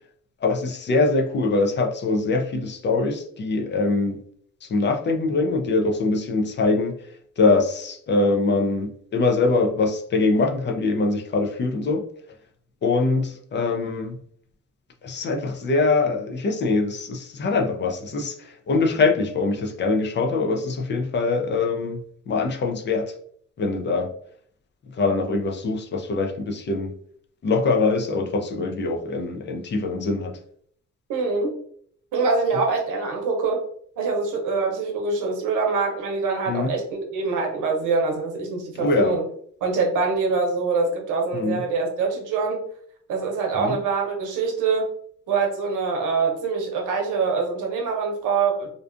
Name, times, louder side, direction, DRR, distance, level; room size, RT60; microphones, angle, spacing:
voice 1, 0.4-4.2 4.6-7.0 7.4-12.1 12.8-14.2 15.0-23.1 23.6-24.1 24.9-26.9 27.4-30.4 36.5-36.7 38.8-39.1 41.3-41.6 43.6-43.8, left 3 dB, 40° left, 3 dB, 0.4 m, -23 dB
voice 2, 31.1-31.5 32.1-33.6 34.0-39.2 39.6-42.6 43.1-44.9 45.3-48.7, right 4 dB, 85° right, 1 dB, 0.8 m, -24 dB
2.5 x 2.3 x 2.4 m, 0.62 s
cardioid pair, 90°, 30 cm